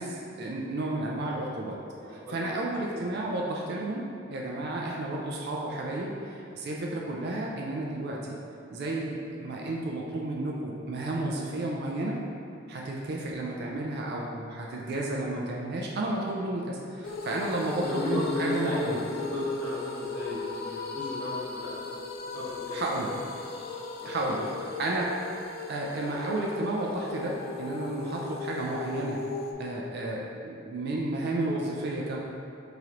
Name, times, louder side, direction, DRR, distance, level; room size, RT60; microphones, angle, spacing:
voice 1, 0.0-1.8 2.1-4.0 4.3-8.4 8.7-12.2 12.7-19.0 22.7-23.1 24.0-24.4 24.8-25.1 25.7-29.2 29.6-32.2, right 2 dB, 55° right, -2 dB, 0.4 m, -32 dB
voice 2, 2.0-2.5 2.9-3.0 17.6-19.0 19.3-21.7 22.3-22.8 24.0-24.5, left 1 dB, 15° left, -12 dB, 1.2 m, -34 dB
sound 1, 17.0-29.5, left 3 dB, 50° left, 0.3 m, -37 dB
3.1 x 2.9 x 3.7 m, 2.5 s
head